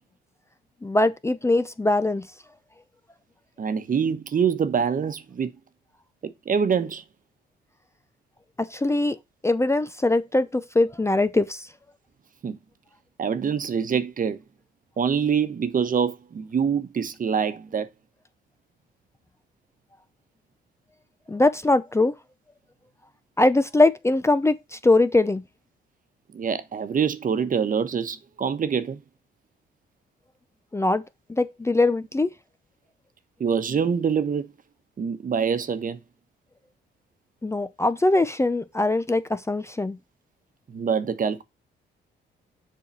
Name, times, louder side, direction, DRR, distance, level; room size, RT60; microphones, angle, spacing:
voice 1, 0.8-2.3 8.6-9.2 9.4-11.7 21.3-22.1 23.4-25.4 30.7-31.0 31.3-32.3 37.4-40.0, left 2 dB, 15° left, 0.6 m, -22 dB
voice 2, 3.6-5.5 6.2-7.0 12.4-12.6 13.2-14.4 15.0-17.9 26.3-29.0 33.4-34.5 35.0-36.0 40.7-41.4, right 7 dB, 45° right, 1.2 m, -25 dB
7.4 x 4.8 x 5.4 m
cardioid pair, 90°, 20 cm